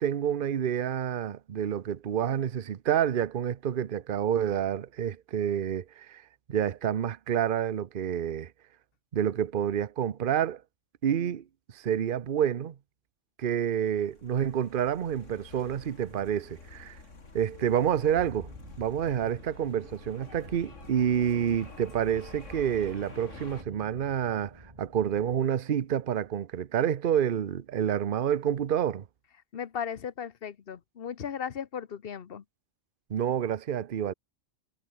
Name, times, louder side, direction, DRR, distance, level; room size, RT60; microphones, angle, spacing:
voice 1, 0.0-6.2 6.5-8.5 9.1-10.6 11.0-11.4 11.7-12.7 13.4-17.0 17.3-18.5 18.8-29.0 33.1-34.1, right 9 dB, 50° right, 0.9 m, -28 dB
sound 1, 13.9-23.6, left 3 dB, 80° left, 3.3 m, -49 dB
sound 2, 18.2-25.5, right 1 dB, 30° right, 5.4 m, -50 dB
voice 2, 29.5-32.4, left 7 dB, 55° left, 1.1 m, -36 dB
omnidirectional pair, 1.3 m